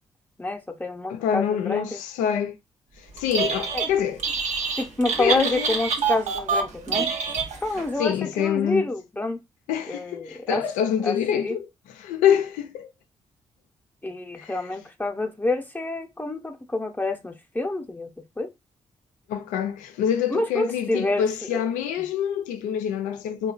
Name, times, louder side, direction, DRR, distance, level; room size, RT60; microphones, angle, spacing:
voice 1, 0.4-2.0 3.7-3.9 4.8-7.1 7.6-9.4 9.9-10.6 11.0-11.6 14.0-18.1 18.4-18.5 20.3-21.2 21.5-21.6 22.0-22.1, left 2 dB, 15° left, 0.6 m, -28 dB
voice 2, 1.1-2.6 3.2-4.2 5.2-5.7 8.0-8.9 9.7-11.7 12.0-12.9 14.4-14.5 19.3-23.5, left 9 dB, 85° left, 0.4 m, -25 dB
Telephone, 3.2-3.9 4.2-7.9, right 5 dB, 65° right, 0.6 m, -26 dB
2.7 x 2.2 x 2.4 m
hypercardioid pair, 45°, 13 cm